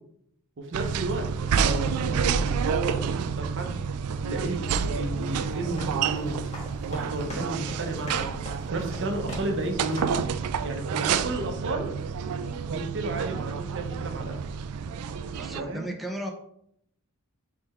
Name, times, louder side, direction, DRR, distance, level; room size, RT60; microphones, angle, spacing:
voice 1, 0.6-1.3 1.5-3.8 4.2-6.4 6.9-8.3 8.7-10.1 10.6-11.9 12.7-14.4 15.6-15.9, right 2 dB, 55° right, 5 dB, 0.7 m, -32 dB
sound 1, 0.7-15.6, right 6 dB, 75° right, 0.3 m, -29 dB
sound 2, 5.2-9.7 9.9-10.3, left 1 dB, 30° left, 1.4 m, -42 dB
voice 2, 15.3-16.3, right 1 dB, ahead, 1 dB, 0.4 m, -36 dB
3.7 x 3.3 x 4.2 m, 0.72 s
head